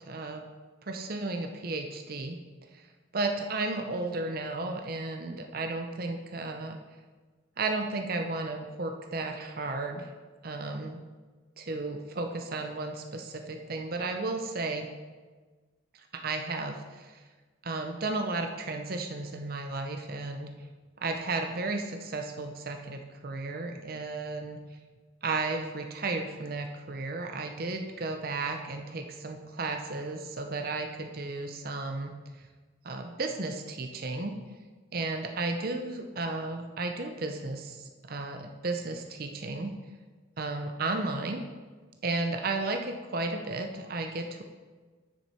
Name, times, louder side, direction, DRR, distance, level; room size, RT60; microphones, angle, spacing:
voice 1, 0.1-0.4 0.8-2.4 2.7-2.9 3.1-6.8 7.6-10.1 10.4-11.0 11.6-14.9 16.0-17.2 17.6-20.5 21.0-24.6 25.2-32.1 32.8-34.3 34.9-39.7 40.4-41.4 42.0-44.4, right 3 dB, 50° right, 5 dB, 0.7 m, -33 dB
9.3 x 6.8 x 4.3 m, 1.4 s
head